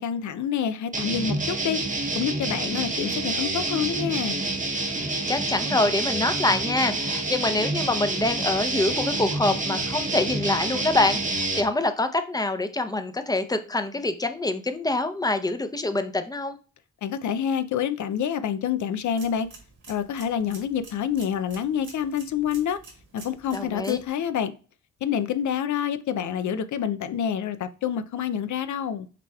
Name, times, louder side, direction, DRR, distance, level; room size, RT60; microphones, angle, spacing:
voice 1, 0.0-1.8 2.2-4.4 17.0-19.5 19.9-22.8 23.1-24.5 25.0-29.1, left 8 dB, 70° left, 0.5 m, -27 dB
sound 1, 0.9-11.6, right 2 dB, 25° right, 0.8 m, -28 dB
voice 2, 5.3-16.6 23.5-24.0, left 2 dB, 10° left, 0.6 m, -25 dB
sound 2, 19.0-24.1, right 3 dB, 70° right, 1.8 m, -49 dB
5.8 x 3.3 x 2.3 m
cardioid pair, 60°, 30 cm